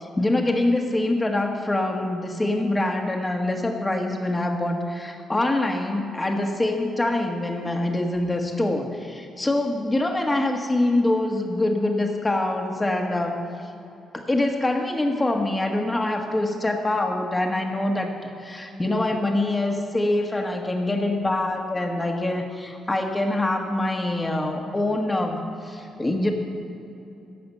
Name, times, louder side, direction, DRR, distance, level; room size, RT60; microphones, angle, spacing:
voice 1, 0.0-13.4 14.1-18.1 18.4-26.3, left 2 dB, 20° left, 3 dB, 1.6 m, -24 dB
14.0 x 5.8 x 8.1 m, 2.8 s
cardioid pair, 90°, 0 cm